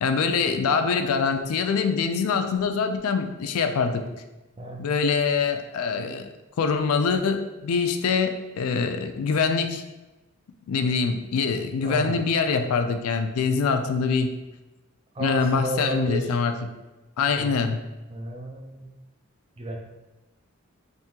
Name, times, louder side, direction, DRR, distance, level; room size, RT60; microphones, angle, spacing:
voice 1, 0.0-4.1 4.8-6.3 6.6-9.8 10.7-14.3 15.2-16.7 17.2-17.8, left 5 dB, 85° left, 7 dB, 0.4 m, -24 dB
voice 2, 11.8-12.2 15.2-16.2 17.3-17.6 18.1-18.9 19.6-19.8, right 1 dB, 25° right, 1 dB, 0.4 m, -32 dB
3.5 x 2.7 x 2.8 m, 1.1 s
head